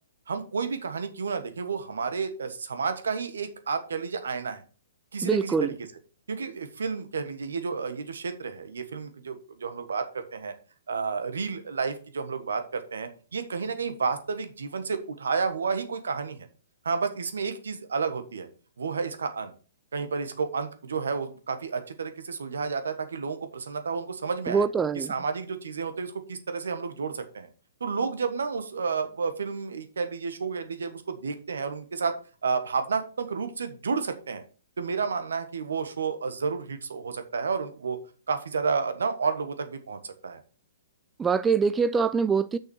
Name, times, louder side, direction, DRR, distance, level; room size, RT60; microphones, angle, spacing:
voice 1, 0.3-4.6 5.1-5.7 6.3-10.5 10.9-16.5 16.8-18.5 18.8-19.5 19.9-24.6 24.9-27.5 27.8-32.1 32.4-34.4 34.8-38.0 38.3-40.4, right 5 dB, 75° right, 1.4 m, -31 dB
voice 2, 5.2-5.7 24.5-25.1 41.2-42.6, right 5 dB, 15° right, 0.4 m, -24 dB
6.4 x 6.0 x 6.2 m
hypercardioid pair, 125°, 0 cm